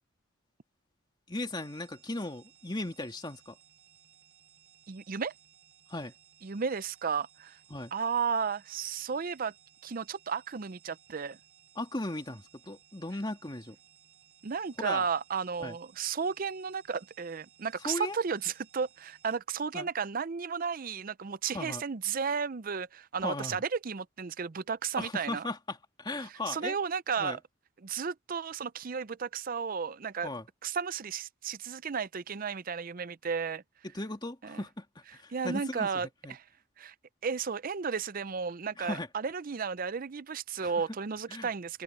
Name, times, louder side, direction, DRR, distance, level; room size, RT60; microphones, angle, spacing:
voice 1, 1.3-3.6 5.9-6.1 7.7-7.9 11.8-13.8 14.8-15.1 15.6-15.8 17.8-18.2 19.7-19.9 21.5-21.8 23.2-23.6 25.0-26.8 27.2-27.4 30.2-30.4 33.8-36.4 38.8-39.1 40.6-40.7 41.3-41.5, left 2 dB, 20° left, 2.7 m, -37 dB
sound 1, 1.6-19.4, right 10 dB, 80° right, 4.7 m, -61 dB
voice 2, 4.9-5.3 6.4-7.6 7.9-9.5 9.8-11.4 14.4-25.5 26.5-27.4 27.8-30.3 30.6-33.6 34.4-34.6 35.3-36.4 36.8-36.9 37.2-41.8, right 6 dB, 45° right, 0.5 m, -33 dB
open air
head